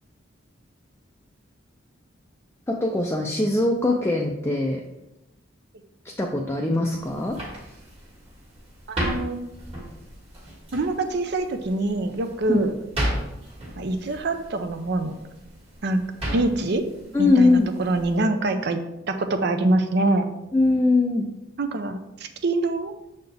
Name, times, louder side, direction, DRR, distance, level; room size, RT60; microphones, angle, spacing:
voice 1, 2.7-4.8 6.0-7.4 12.5-12.6 17.1-17.7 20.5-21.3, left 2 dB, 15° left, 0 dB, 0.4 m, -21 dB
sound 1, 7.0-18.2, equal, 30° right, 1.7 m, -35 dB
voice 2, 8.9-9.4 10.7-12.7 13.8-15.1 15.8-16.0 16.3-16.8 17.2-18.8 19.1-20.3 21.6-22.0 22.4-22.9, right 2 dB, 60° right, 8 dB, 0.6 m, -24 dB
6.6 x 4.1 x 3.4 m, 0.90 s
head